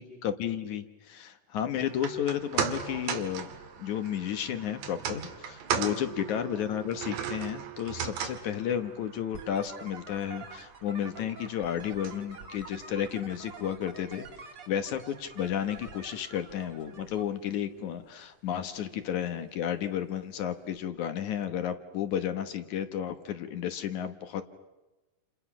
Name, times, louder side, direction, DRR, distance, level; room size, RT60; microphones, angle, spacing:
voice 1, 0.0-3.5 3.8-14.3 14.7-24.4, left 9 dB, 65° left, 9 dB, 2.1 m, -32 dB
sound 1, 1.9-14.3 14.6-14.7, right 8 dB, 85° right, 4.1 m, -38 dB
sound 2, 9.3-17.2, right 4 dB, 40° right, 2.6 m, -47 dB
29.5 x 29.0 x 6.0 m, 1.1 s
omnidirectional pair, 4.7 m